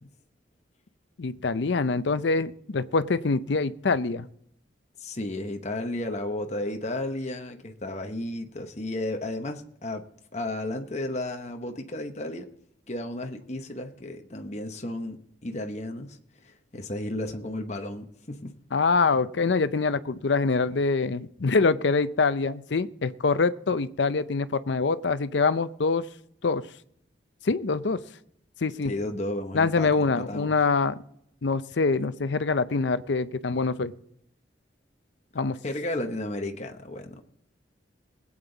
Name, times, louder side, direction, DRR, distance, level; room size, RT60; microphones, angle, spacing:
voice 1, 1.2-4.3 18.7-26.1 26.4-26.6 27.4-28.0 28.6-28.9 29.5-30.9 31.4-33.9 35.3-35.6, left 4 dB, 70° left, 13 dB, 0.6 m, -25 dB
voice 2, 5.0-10.1 10.3-12.5 12.9-16.2 16.4-18.5 28.8-29.9 30.2-30.5 35.6-37.2, left 1 dB, 35° left, 5 dB, 0.9 m, -33 dB
20.0 x 8.8 x 3.9 m, 0.72 s
head